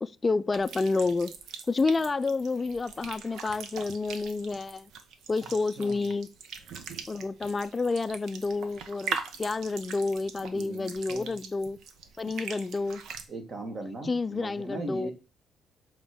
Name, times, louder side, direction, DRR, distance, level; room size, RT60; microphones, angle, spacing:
voice 1, 0.0-1.3 1.7-4.9 5.3-6.3 7.1-11.8 12.2-13.0 14.1-15.1, left 3 dB, 25° left, 0.4 m, -29 dB
sound 1, 0.5-13.2, right 6 dB, 80° right, 0.9 m, -41 dB
voice 2, 5.8-6.1 10.5-11.4 13.3-15.1, right 2 dB, 45° right, 1.8 m, -39 dB
6.9 x 3.1 x 5.1 m
cardioid pair, 90°, 0 cm